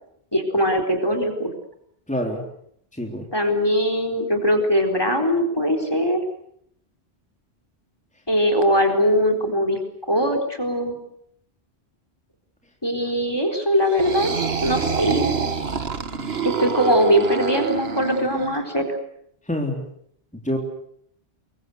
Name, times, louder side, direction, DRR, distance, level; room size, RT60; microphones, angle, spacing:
voice 1, 0.3-1.5 3.3-6.2 8.3-9.8 10.1-11.0 12.8-14.3 14.6-15.3 16.4-18.9, equal, 20° left, 7 dB, 4.1 m, -21 dB
voice 2, 2.1-2.4 2.9-3.3 19.4-19.8 20.3-20.6, left 1 dB, 5° left, 1 dB, 3.7 m, -26 dB
sound 1, 13.8-18.6, right 5 dB, 65° right, 1.7 m, -26 dB
27.5 x 23.0 x 8.0 m, 0.69 s
omnidirectional pair, 1.1 m